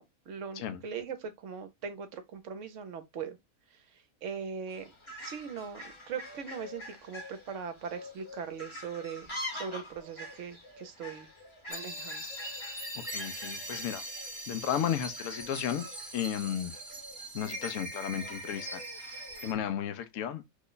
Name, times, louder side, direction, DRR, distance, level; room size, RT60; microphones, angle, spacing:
voice 1, 0.0-3.4 3.7-4.9 5.2-11.3 11.7-12.2, right 6 dB, 65° right, 1.0 m, -40 dB
Fowl, 4.7-19.5, left 1 dB, 25° left, 0.9 m, -46 dB
sound 1, 11.7-19.5, right 1 dB, 25° right, 0.7 m, -41 dB
voice 2, 12.9-14.1 14.5-15.9 16.1-16.8 17.3-20.4, left 9 dB, 70° left, 0.9 m, -34 dB
3.0 x 2.2 x 3.7 m
omnidirectional pair, 1.5 m